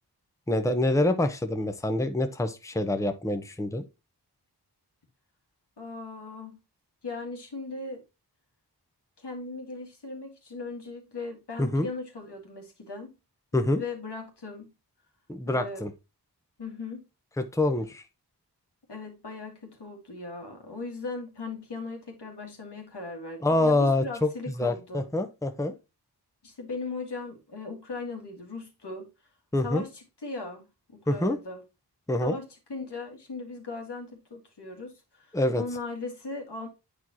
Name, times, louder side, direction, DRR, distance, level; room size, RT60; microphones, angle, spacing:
voice 1, 0.5-3.8 11.6-11.9 13.5-13.8 15.3-15.9 17.5-18.0 23.4-24.3 24.6-25.7 29.5-29.8 31.1-31.4 32.1-32.4 35.3-35.6, left 2 dB, 10° left, 0.8 m, -26 dB
voice 2, 5.8-6.6 7.0-8.0 9.2-13.1 13.7-14.7 15.5-15.8 16.6-17.0 18.9-25.1 26.4-29.1 29.6-31.6 32.2-36.7, left 3 dB, 75° left, 2.0 m, -38 dB
8.5 x 4.6 x 2.9 m
cardioid pair, 40°, 41 cm